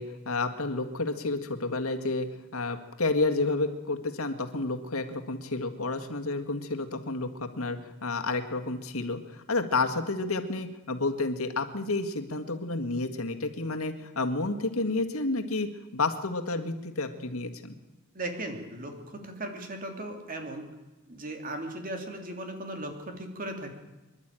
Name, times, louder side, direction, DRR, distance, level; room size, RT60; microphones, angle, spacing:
voice 1, 0.0-2.3 2.5-17.8, left 3 dB, 85° left, 5 dB, 1.8 m, -30 dB
voice 2, 18.1-20.7 21.1-23.7, right 1 dB, 40° right, 4 dB, 3.0 m, -37 dB
25.5 x 11.5 x 9.1 m, 1.1 s
head